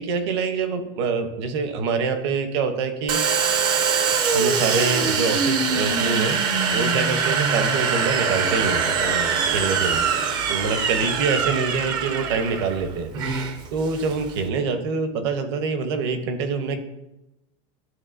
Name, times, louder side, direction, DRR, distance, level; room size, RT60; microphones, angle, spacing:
voice 1, 0.0-3.5 4.3-10.1 10.5-16.8, right 4 dB, 55° right, 8 dB, 0.8 m, -26 dB
Domestic sounds home sounds, 3.1-14.5, right 6 dB, 30° right, 0.4 m, -23 dB
11.0 x 3.6 x 2.5 m, 0.91 s
supercardioid pair, 165°, 16 cm